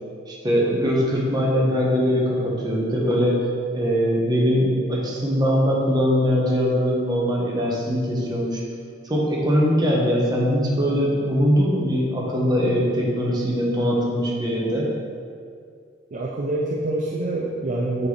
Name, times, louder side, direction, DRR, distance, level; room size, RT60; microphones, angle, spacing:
voice 1, 0.3-3.4 3.7-8.6 9.0-14.9, equal, 20° right, -4 dB, 1.1 m, -21 dB
voice 2, 16.1-18.1, right 2 dB, 45° right, -2 dB, 0.5 m, -26 dB
7.8 x 4.0 x 3.3 m, 2.2 s
head